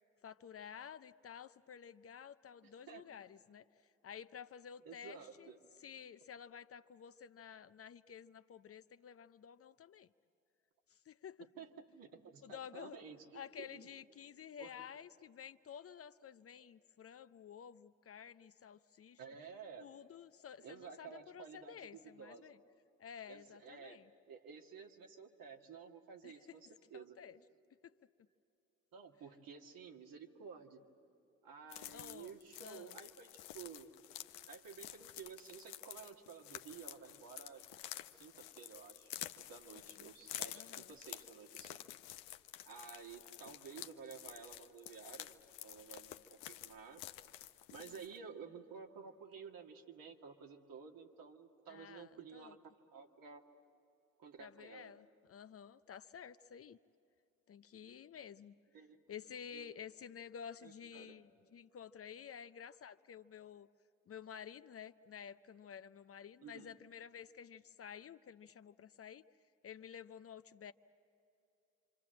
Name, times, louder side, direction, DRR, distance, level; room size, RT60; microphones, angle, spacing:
voice 1, 0.2-5.5 5.8-10.1 10.9-11.5 12.4-13.0 13.3-19.2 19.8-22.6 23.0-24.1 26.2-26.6 26.9-27.4 27.8-28.0 31.9-32.3 32.6-33.0 39.9-40.1 40.5-40.9 47.8-47.9 51.7-52.5 54.4-56.8 57.5-58.6 59.1-63.7 64.1-69.2 69.6-70.7, left 8 dB, 40° left, 12 dB, 0.6 m, -52 dB
voice 2, 4.8-5.6 11.6-13.8 14.6-14.7 19.2-19.9 20.6-22.6 23.3-24.0 24.3-27.2 28.9-30.8 31.4-33.9 34.5-37.6 38.1-41.8 42.6-47.0 47.7-53.4 54.2-54.9 58.7-59.0 59.5-59.8 60.6-61.2 66.4-66.7, right 6 dB, 65° right, 3 dB, 2.0 m, -53 dB
sound 1, 31.7-48.2, left 13 dB, 80° left, 0.8 m, -50 dB
26.5 x 26.0 x 7.6 m, 2.8 s
hypercardioid pair, 50°, 37 cm